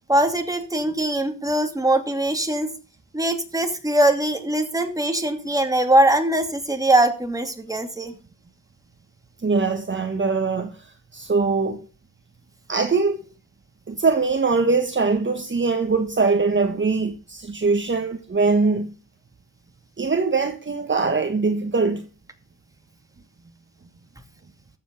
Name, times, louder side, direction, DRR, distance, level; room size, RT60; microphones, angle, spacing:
voice 1, 0.1-2.7 3.1-8.1, right 1 dB, 10° right, 2.4 m, -21 dB
voice 2, 9.4-10.8 11.1-11.8 12.7-13.2 13.9-18.9 20.0-22.1, right 4 dB, 35° right, 1.3 m, -22 dB
13.0 x 8.0 x 5.2 m
cardioid pair, 85°, 33 cm